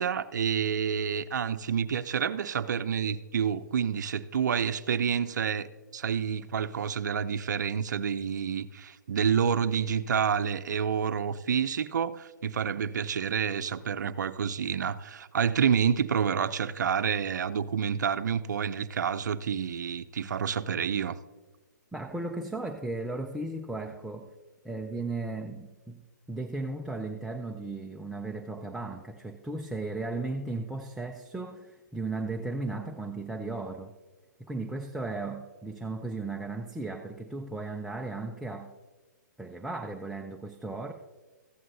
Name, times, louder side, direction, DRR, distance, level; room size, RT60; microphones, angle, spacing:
voice 1, 0.0-5.7 5.9-21.2, right 7 dB, 70° right, 12 dB, 0.5 m, -28 dB
voice 2, 21.9-24.3 24.6-26.0 26.3-33.9 34.4-38.7 39.4-40.9, right 2 dB, ahead, 2 dB, 0.4 m, -36 dB
14.5 x 11.0 x 2.7 m, 1.3 s
hypercardioid pair, 145°, 10 cm